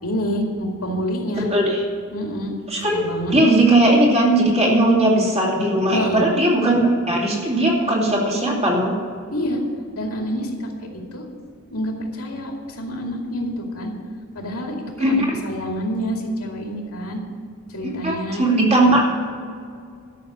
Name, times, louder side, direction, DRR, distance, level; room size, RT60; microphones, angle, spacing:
voice 1, 0.0-1.5 2.1-3.3 5.9-6.2 9.3-9.6 9.9-10.7 11.1-11.2 11.7-13.9 14.3-17.2 17.7-18.5, equal, 75° left, 1 dB, 2.5 m, -27 dB
voice 2, 1.5-1.8 2.7-3.0 3.3-6.8 7.1-8.9 15.0-15.2 17.8-19.0, right 1 dB, 30° right, -2 dB, 2.8 m, -18 dB
12.5 x 6.6 x 8.5 m, 2.2 s
head